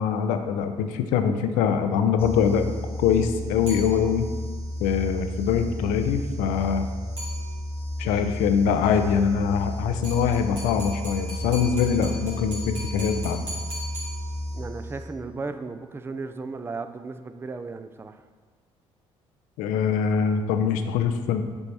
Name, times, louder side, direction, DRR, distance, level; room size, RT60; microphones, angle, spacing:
voice 1, 0.0-2.7 3.0-4.3 4.8-6.9 8.0-13.4 19.6-21.4, left 7 dB, 65° left, 8 dB, 0.5 m, -23 dB
sound 1, 2.2-15.3, left 1 dB, 40° left, 1.2 m, -33 dB
sound 2, 3.7-4.4 7.2-7.9 10.0-14.7, equal, 80° right, 2.1 m, -39 dB
voice 2, 14.5-18.2, right 3 dB, 15° right, 9 dB, 0.4 m, -35 dB
7.0 x 4.5 x 4.1 m, 1.5 s
figure-of-eight pair, 50°, 15 cm